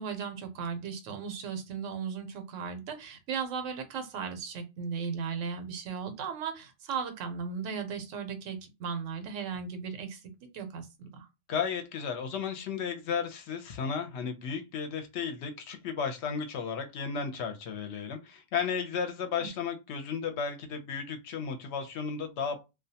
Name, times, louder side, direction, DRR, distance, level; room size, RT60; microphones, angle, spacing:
voice 1, 0.0-10.2 10.5-11.3 19.4-19.5, right 6 dB, 90° right, 1.0 m, -36 dB
voice 2, 11.5-22.6, left 6 dB, 70° left, 0.8 m, -34 dB
2.3 x 2.2 x 2.7 m
omnidirectional pair, 1.3 m